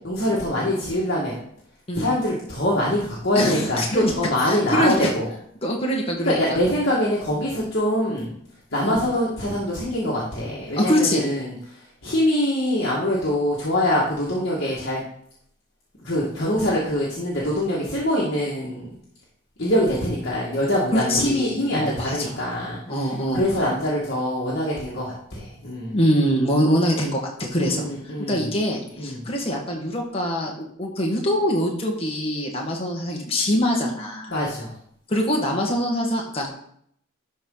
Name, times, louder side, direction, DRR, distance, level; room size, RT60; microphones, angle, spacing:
voice 1, 0.0-1.4 1.9-5.3 6.2-8.3 8.7-15.0 16.0-18.9 19.6-23.1 23.3-26.0 27.6-28.5 29.0-29.2 34.3-34.8, left 1 dB, 50° left, -6 dB, 1.7 m, -24 dB
voice 2, 3.3-4.1 4.5-5.1 5.6-6.6 8.8-9.0 10.8-11.2 20.9-22.4 22.9-23.4 25.9-27.9 28.3-34.3 35.1-36.5, equal, 25° left, -1 dB, 1.4 m, -24 dB
11.5 x 4.5 x 3.8 m, 0.67 s
head